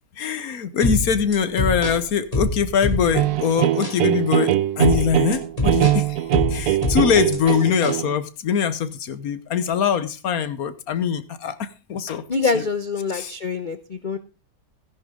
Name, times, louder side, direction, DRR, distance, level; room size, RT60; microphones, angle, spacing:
voice 1, 0.2-6.2 6.5-12.2 12.5-12.6 13.1-13.3, left 7 dB, 65° left, 1.4 m, -23 dB
sound 1, 0.8-3.4 3.8-4.0 4.8-7.4 7.8-8.0, left 1 dB, 20° left, 2.5 m, -26 dB
sound 2, 3.1-8.2, right 12 dB, 70° right, 1.3 m, -22 dB
voice 2, 12.3-14.2, left 4 dB, 40° left, 0.7 m, -25 dB
16.5 x 10.5 x 3.7 m
omnidirectional pair, 1.7 m